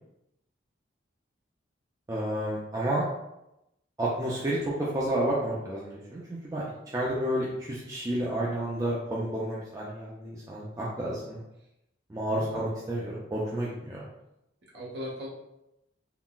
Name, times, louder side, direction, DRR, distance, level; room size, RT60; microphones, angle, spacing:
voice 1, 2.1-3.0 4.0-6.6 6.9-11.4 12.1-14.0, right 1 dB, 15° right, -6 dB, 0.3 m, -30 dB
voice 2, 12.3-12.6 14.7-15.3, left 1 dB, 55° right, -6 dB, 0.9 m, -40 dB
3.8 x 2.1 x 2.3 m, 0.88 s
head